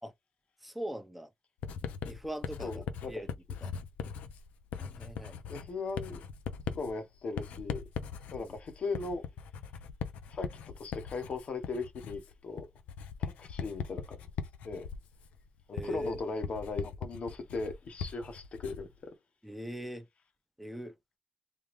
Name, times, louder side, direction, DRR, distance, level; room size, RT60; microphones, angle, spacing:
voice 1, 0.6-1.3 2.1-3.3 3.6-3.7 4.8-5.4 8.4-8.6 15.7-16.2 19.4-20.1 20.6-20.9, right 1 dB, 5° right, 0.7 m, -40 dB
Writing, 1.6-19.0, left 7 dB, 90° left, 0.5 m, -40 dB
voice 2, 2.6-3.2 5.5-6.2 6.7-7.8 8.3-9.2 10.3-12.7 13.2-14.2 14.6-14.9 15.7-19.1, left 3 dB, 65° left, 1.1 m, -38 dB
3.5 x 2.3 x 3.1 m
supercardioid pair, 55°, 2 cm